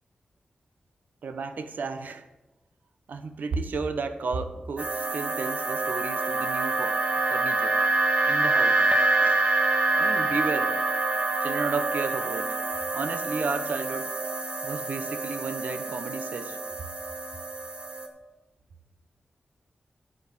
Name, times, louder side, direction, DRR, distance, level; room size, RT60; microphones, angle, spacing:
voice 1, 1.2-2.2 3.1-7.0 7.3-7.7 8.2-8.8 9.2-9.4 10.0-10.7 11.4-12.5 12.9-14.1 14.6-16.6, right 4 dB, 80° right, 9 dB, 1.0 m, -32 dB
sound 1, 4.8-18.1, right 2 dB, 45° right, 1.6 m, -26 dB
10.5 x 6.2 x 7.3 m, 1.1 s
wide cardioid pair, 85°, 3 cm